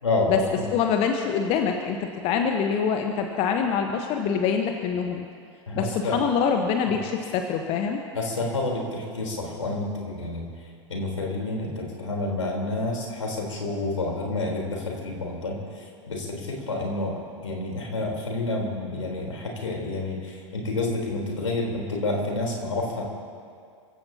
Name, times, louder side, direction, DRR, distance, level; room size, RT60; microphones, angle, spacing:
voice 1, 0.0-0.7 5.7-6.2 8.1-10.4 10.9-15.6 16.1-17.1 17.4-23.0, left 2 dB, 75° left, -1 dB, 3.8 m, -29 dB
voice 2, 0.7-2.0 2.2-5.2 5.7-8.0, left 6 dB, 40° left, 4 dB, 1.2 m, -25 dB
29.0 x 16.0 x 2.9 m, 2.3 s
figure-of-eight pair, 90°, 16 cm